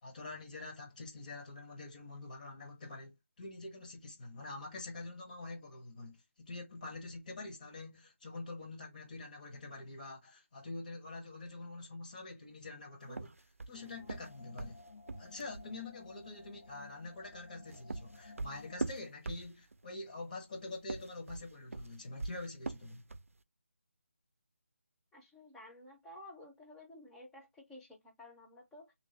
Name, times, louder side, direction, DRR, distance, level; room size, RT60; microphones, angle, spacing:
voice 1, 0.0-14.8 15.2-23.1, left 2 dB, 35° left, 1.0 m, -46 dB
sound 1, 13.1-15.7 17.4-19.9 20.7-23.4, right 3 dB, 90° right, 0.4 m, -42 dB
sound 2, 13.7-19.0, left 3 dB, 75° left, 0.7 m, -55 dB
voice 2, 25.1-28.9, left 1 dB, 5° left, 0.6 m, -53 dB
3.1 x 2.5 x 4.0 m
figure-of-eight pair, 160°, 7 cm